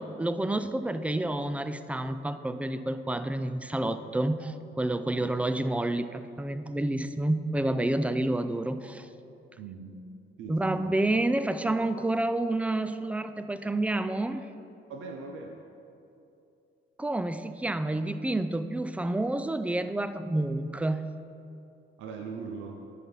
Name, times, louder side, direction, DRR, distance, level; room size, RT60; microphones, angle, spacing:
voice 1, 0.0-9.1 10.5-14.5 17.0-21.1, right 1 dB, 5° right, 11 dB, 0.4 m, -29 dB
voice 2, 9.6-10.0 10.4-11.0 14.9-15.6 22.0-22.8, right 5 dB, 80° right, 2 dB, 0.7 m, -40 dB
9.4 x 5.9 x 5.5 m, 2.7 s
cardioid pair, 90°, 20 cm